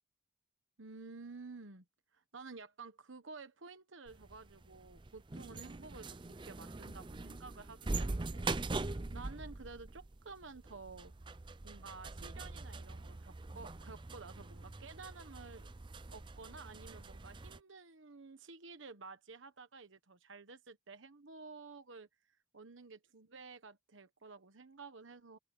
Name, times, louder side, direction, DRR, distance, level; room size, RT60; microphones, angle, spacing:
voice 1, 0.8-1.8 2.1-11.1 11.6-15.7 16.1-22.1 22.5-25.4, right 4 dB, 90° right, 1.2 m, -52 dB
sound 1, 4.1-17.6, right 3 dB, 25° right, 0.5 m, -43 dB
open air
head